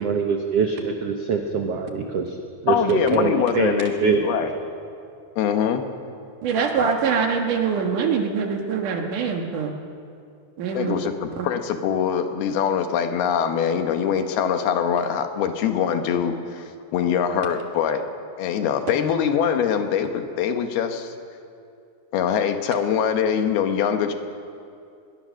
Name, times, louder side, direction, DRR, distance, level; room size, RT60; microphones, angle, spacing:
voice 1, 0.0-2.4 2.6-4.3 4.5-4.7, right 5 dB, 80° right, 3 dB, 1.4 m, -24 dB
voice 2, 2.7-4.5 5.4-5.8 10.7-18.0 18.4-21.1 22.1-24.1, left 8 dB, 75° left, 6 dB, 3.1 m, -23 dB
voice 3, 6.4-9.7 10.6-11.0 11.4-11.5, right 6 dB, 60° right, 3 dB, 2.8 m, -24 dB
21.5 x 21.0 x 6.4 m, 2.5 s
omnidirectional pair, 4.6 m